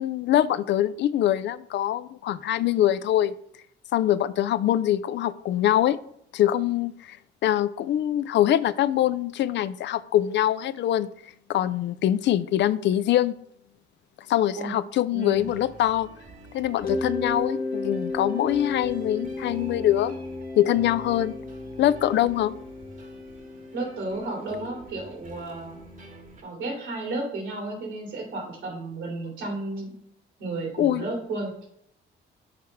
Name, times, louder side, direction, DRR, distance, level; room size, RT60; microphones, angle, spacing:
voice 1, 0.0-3.3 3.9-6.0 6.3-7.2 7.4-11.1 11.5-13.4 14.3-16.1 16.5-20.1 20.6-21.3 21.8-22.5 30.8-31.0, left 12 dB, 65° left, 15 dB, 0.4 m, -23 dB
voice 2, 15.1-15.5 23.7-25.8 26.4-29.9 30.4-31.5, right 2 dB, 85° right, -1 dB, 2.6 m, -33 dB
sound 1, 15.3-26.4, right 2 dB, 40° right, 1.2 m, -47 dB
Mallet percussion, 16.8-25.4, left 3 dB, 45° left, 1.0 m, -34 dB
6.5 x 4.7 x 3.4 m, 0.70 s
cardioid pair, 90°, 20 cm